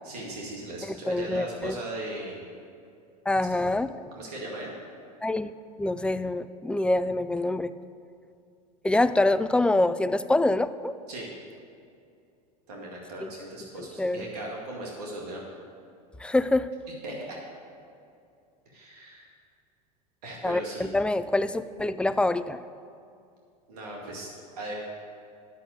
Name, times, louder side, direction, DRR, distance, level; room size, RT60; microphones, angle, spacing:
voice 1, 0.0-2.4 3.4-3.7 4.2-4.7 11.1-11.3 12.7-15.4 17.0-17.4 18.7-19.3 20.2-20.9 23.7-24.3 24.6-24.7, right 1 dB, 75° right, -2 dB, 2.1 m, -38 dB
voice 2, 0.9-1.8 3.3-3.9 5.2-5.5 5.8-7.7 8.8-10.9 13.2-13.3 13.8-14.3 16.2-16.7 20.4-22.6, left 2 dB, 5° left, 13 dB, 0.3 m, -25 dB
10.5 x 6.4 x 7.7 m, 2.4 s
hypercardioid pair, 90°, 20 cm